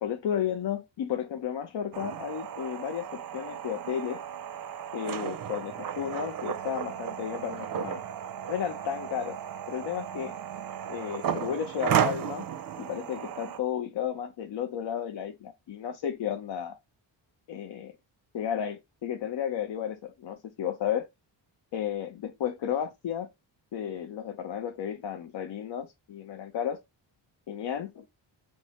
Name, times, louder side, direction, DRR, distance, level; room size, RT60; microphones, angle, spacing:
voice 1, 0.0-4.2 4.9-8.0 8.5-9.4 9.7-10.3 10.9-12.5 12.8-16.8 17.5-17.9 18.3-21.1 21.7-23.3 23.7-26.8 27.5-28.0, left 9 dB, 65° left, 0.7 m, -33 dB
sound 1, 1.9-13.6, right 9 dB, 50° right, 0.5 m, -34 dB
5.9 x 2.0 x 4.2 m
wide cardioid pair, 150°, 47 cm